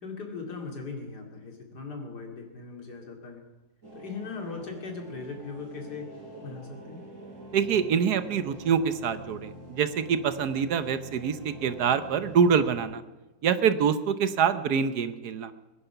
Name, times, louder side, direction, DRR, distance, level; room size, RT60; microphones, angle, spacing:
voice 1, 0.0-3.4 3.9-6.1 6.4-7.1, left 4 dB, 70° left, 2 dB, 3.1 m, -39 dB
sound 1, 3.8-12.8, equal, 45° right, 5.8 m, -45 dB
voice 2, 7.5-13.0 13.4-15.5, right 7 dB, 70° right, 12 dB, 1.3 m, -25 dB
22.5 x 9.9 x 5.8 m, 1.1 s
omnidirectional pair, 1.9 m